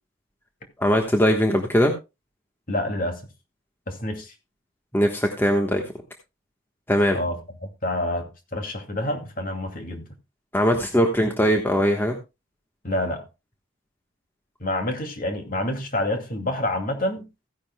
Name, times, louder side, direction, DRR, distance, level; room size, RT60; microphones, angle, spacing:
voice 1, 0.8-1.9 4.9-5.8 6.9-7.2 10.5-12.2, equal, 10° left, 1.2 m, -20 dB
voice 2, 2.7-3.2 3.9-4.3 7.1-7.4 7.8-10.1 12.8-13.3 14.6-17.2, left 1 dB, 45° left, 2.4 m, -27 dB
16.0 x 10.5 x 2.2 m
head